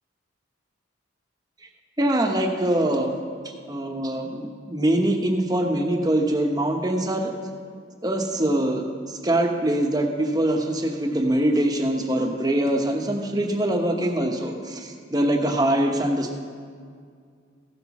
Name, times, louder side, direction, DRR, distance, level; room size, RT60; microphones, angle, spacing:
voice 1, 2.0-3.2 3.7-7.3 8.0-16.4, right 1 dB, 20° right, 3 dB, 1.0 m, -23 dB
15.0 x 8.3 x 5.9 m, 2.1 s
head